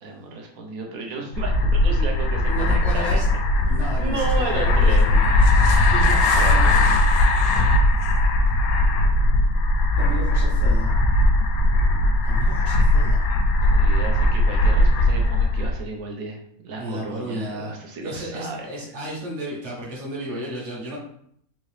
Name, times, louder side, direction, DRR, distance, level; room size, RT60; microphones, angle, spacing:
voice 1, 0.0-3.2 4.0-5.1 5.4-5.7 6.0-6.7 11.7-12.3 13.6-18.7, right 3 dB, 75° right, 0 dB, 1.2 m, -34 dB
sound 1, 1.3-15.8, left 1 dB, 80° left, 1.0 m, -19 dB
voice 2, 2.5-3.2 3.5-5.2 5.9-7.0 10.0-10.9 12.2-13.3 16.7-17.7 18.0-21.0, equal, 55° right, -4 dB, 1.4 m, -33 dB
3.8 x 2.6 x 3.2 m, 0.69 s
omnidirectional pair, 1.5 m